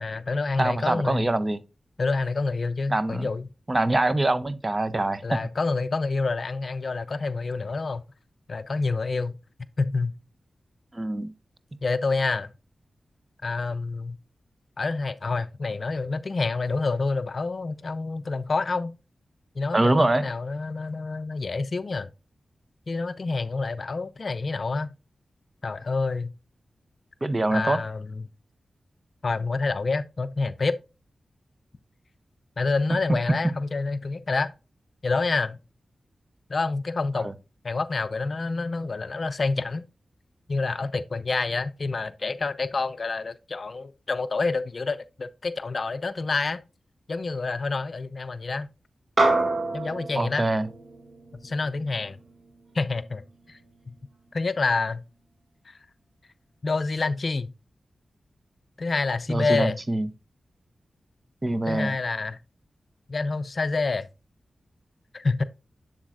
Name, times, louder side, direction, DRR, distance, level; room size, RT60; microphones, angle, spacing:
voice 1, 0.0-1.3 2.0-3.5 5.2-8.0 8.5-9.4 9.8-10.2 11.8-12.5 13.4-14.2 14.8-18.9 19.6-22.1 22.9-24.9 25.6-26.3 27.5-28.3 29.2-30.8 32.6-34.5 35.0-35.6 36.5-37.3 37.6-39.8 40.5-46.6 47.1-48.7 49.7-50.4 51.4-52.2 52.7-53.2 53.5-53.6 53.9-54.0 54.3-55.0 55.7-55.8 56.6-57.5 58.8-59.8 61.7-62.4 63.1-64.1 65.1-65.4, left 3 dB, 55° left, 0.4 m, -27 dB
voice 2, 0.6-1.6 2.9-3.3 3.7-5.4 10.9-11.3 19.7-20.3 27.2-27.8 37.1-37.3 50.1-50.7 59.3-60.1 61.4-62.0, right 2 dB, 30° right, 0.5 m, -24 dB
sound 1, 49.2-53.8, right 2 dB, 50° right, 1.8 m, -28 dB
7.4 x 7.2 x 2.4 m
cardioid pair, 70°, 0 cm